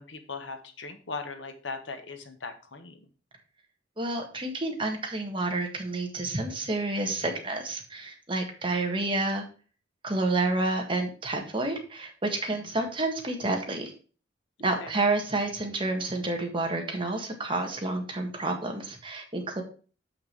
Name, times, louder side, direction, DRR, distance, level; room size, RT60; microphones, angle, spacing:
voice 1, 0.0-3.0 12.6-12.7 14.8-15.0, left 4 dB, 75° left, 7 dB, 1.2 m, -39 dB
voice 2, 4.0-9.4 10.0-13.9 14.6-19.6, right 2 dB, 30° right, 3 dB, 1.6 m, -29 dB
7.2 x 5.9 x 4.6 m, 0.37 s
head